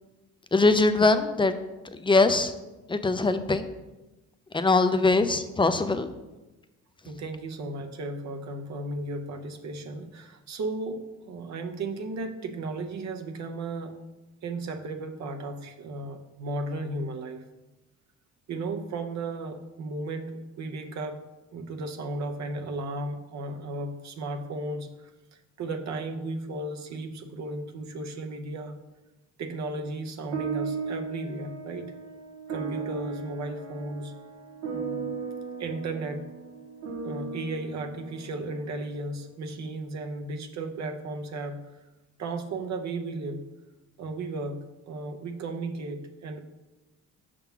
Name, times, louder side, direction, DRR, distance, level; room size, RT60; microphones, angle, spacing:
voice 1, 0.5-1.5 2.0-2.5 2.9-3.7 4.5-6.1, left 3 dB, 15° left, 10 dB, 0.5 m, -22 dB
voice 2, 7.0-14.0 14.4-17.5 18.5-21.3 21.5-28.8 29.4-32.0 32.5-34.1 34.7-35.2 35.6-36.2 37.0-41.6 42.2-43.5 44.0-46.4, right 2 dB, 65° right, 5 dB, 0.7 m, -35 dB
sound 1, 30.3-39.0, right 5 dB, 90° right, 0.9 m, -36 dB
5.7 x 3.8 x 5.7 m, 1.1 s
cardioid pair, 90°, 30 cm